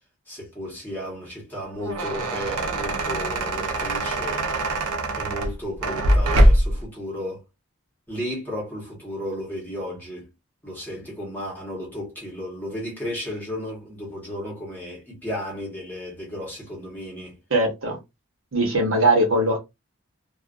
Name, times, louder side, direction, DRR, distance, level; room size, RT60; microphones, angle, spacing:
voice 1, 0.3-4.5 5.2-7.4 8.1-10.3 10.6-17.4, equal, 10° left, 1.0 m, -34 dB
sound 1, 1.6-6.8, right 1 dB, 90° right, 0.6 m, -22 dB
voice 2, 17.5-18.0 18.5-19.6, right 1 dB, 65° right, 0.9 m, -20 dB
2.4 x 2.2 x 2.4 m
head